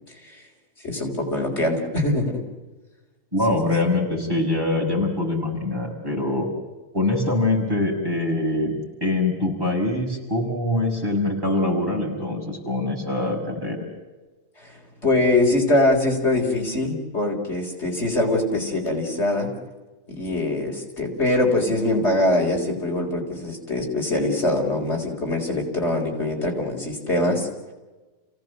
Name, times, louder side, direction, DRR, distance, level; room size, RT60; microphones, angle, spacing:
voice 1, 0.8-2.4 3.5-3.7 14.6-14.7 15.0-19.5 20.1-27.5, left 2 dB, 55° left, 0 dB, 4.6 m, -23 dB
voice 2, 3.3-6.5 6.9-8.7 9.0-13.8, left 2 dB, 15° right, -1 dB, 6.1 m, -24 dB
29.5 x 17.5 x 7.9 m, 1.2 s
omnidirectional pair, 1.4 m